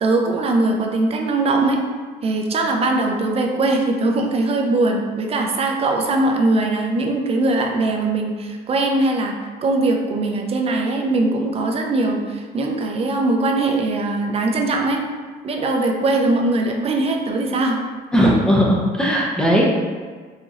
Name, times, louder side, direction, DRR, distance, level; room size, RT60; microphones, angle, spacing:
voice 1, 0.0-1.8 2.2-9.3 9.6-15.0 15.4-17.8, right 2 dB, 35° right, 2 dB, 0.5 m, -20 dB
voice 2, 18.1-19.6, equal, 5° left, -3 dB, 0.7 m, -17 dB
4.0 x 2.9 x 2.4 m, 1.5 s
cardioid pair, 110°, 17 cm